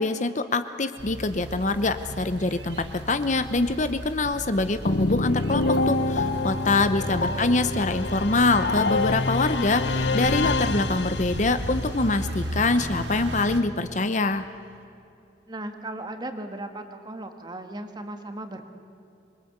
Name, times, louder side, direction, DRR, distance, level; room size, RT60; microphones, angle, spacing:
voice 1, 0.0-14.4, left 3 dB, 40° left, 10 dB, 0.8 m, -24 dB
sound 1, 1.0-13.6, right 1 dB, 70° right, 1.7 m, -36 dB
sound 2, 4.9-11.6, left 2 dB, 70° left, 1.0 m, -26 dB
voice 2, 6.8-7.6 15.5-18.6, right 1 dB, 25° right, 6 dB, 1.7 m, -37 dB
26.0 x 21.5 x 8.2 m, 2.6 s
head